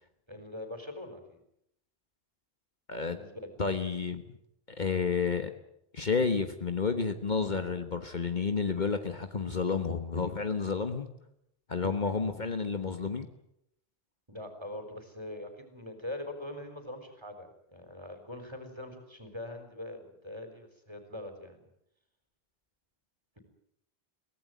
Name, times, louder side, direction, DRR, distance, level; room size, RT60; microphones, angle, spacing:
voice 1, 0.3-1.4 3.1-3.5 14.3-21.7, left 1 dB, 25° right, 7 dB, 4.2 m, -43 dB
voice 2, 3.6-4.2 4.7-5.5 5.9-11.1 11.7-13.3, left 5 dB, 50° left, 8 dB, 1.4 m, -30 dB
23.0 x 17.0 x 9.2 m, 0.76 s
omnidirectional pair, 1.0 m